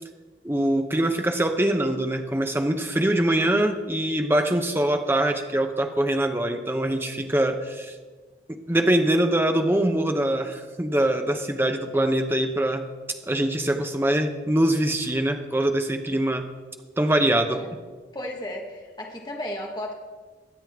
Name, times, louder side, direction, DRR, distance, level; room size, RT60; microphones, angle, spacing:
voice 1, 0.4-7.9 8.5-12.8 13.3-16.5 17.0-17.6, right 1 dB, 15° right, 6 dB, 0.8 m, -23 dB
voice 2, 17.3-17.7 18.1-19.9, left 1 dB, 25° left, 0 dB, 1.4 m, -34 dB
22.5 x 8.2 x 3.6 m, 1.4 s
head